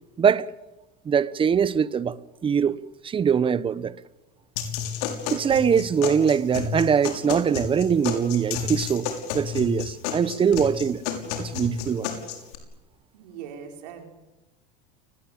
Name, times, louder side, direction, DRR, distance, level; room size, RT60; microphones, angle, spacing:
voice 1, 1.0-2.8 3.0-4.0 5.3-11.0 11.4-12.1, right 7 dB, 25° right, 1.1 m, -22 dB
sound 1, 4.6-12.5, left 7 dB, 75° left, 6.3 m, -31 dB
voice 2, 13.1-14.1, right 8 dB, 80° right, 5.6 m, -40 dB
29.5 x 20.0 x 9.0 m
supercardioid pair, 110°, 21 cm